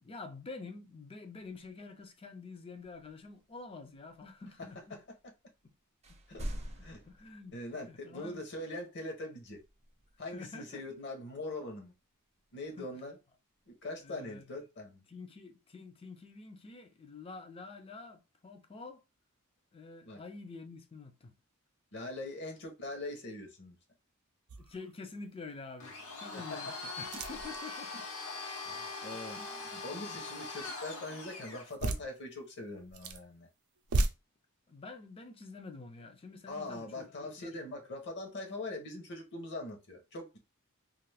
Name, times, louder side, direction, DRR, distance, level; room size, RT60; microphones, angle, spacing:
voice 1, 0.0-5.0 5.6-5.7 7.1-7.5 7.8-8.4 10.3-11.0 12.8-12.9 14.0-14.4 15.1-19.0 19.7-21.3 24.6-28.1 29.4-30.2 34.7-37.5, left 4 dB, 25° left, 0.4 m, -48 dB
sound 1, 2.7-5.7 6.0-8.2 9.4-10.6 12.4-12.9 13.6-14.4, equal, 30° right, 0.5 m, -47 dB
voice 2, 7.5-9.6 10.2-11.9 12.5-13.2 13.7-15.0 20.0-20.2 21.9-23.8 26.3-26.7 28.6-29.4 29.8-33.5 36.5-40.4, left 2 dB, 55° left, 0.8 m, -42 dB
sound 2, 24.5-24.9 25.5-25.6 27.0-27.6 31.7-32.1 32.8-33.2 33.8-34.1, right 2 dB, 80° right, 0.5 m, -33 dB
Domestic sounds home sounds, 25.8-31.7, left 3 dB, 80° left, 0.9 m, -42 dB
2.5 x 2.4 x 3.3 m
head